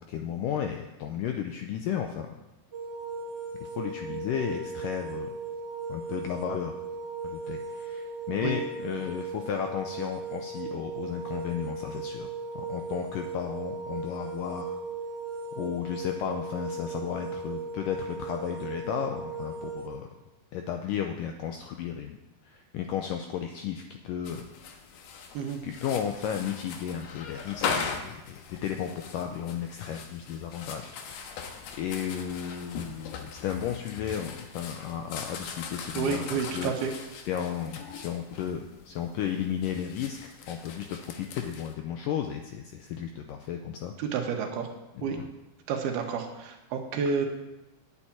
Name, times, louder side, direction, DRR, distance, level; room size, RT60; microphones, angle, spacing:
voice 1, 0.1-2.3 3.6-5.3 5.9-6.7 7.2-12.3 12.6-14.8 15.6-20.1 20.5-22.2 22.4-24.4 25.6-31.3 31.8-36.7 37.3-43.9 44.9-45.3, left 9 dB, 85° left, 4 dB, 1.9 m, -34 dB
sound 1, 2.7-19.9, right 4 dB, 20° right, 2.9 m, -37 dB
sound 2, 24.2-41.7, left 6 dB, 70° left, 2.3 m, -40 dB
voice 2, 36.0-36.9 44.0-44.7 45.0-45.2 45.7-47.3, right 6 dB, 75° right, 4 dB, 3.1 m, -30 dB
9.2 x 7.2 x 8.9 m, 0.98 s
omnidirectional pair, 4.6 m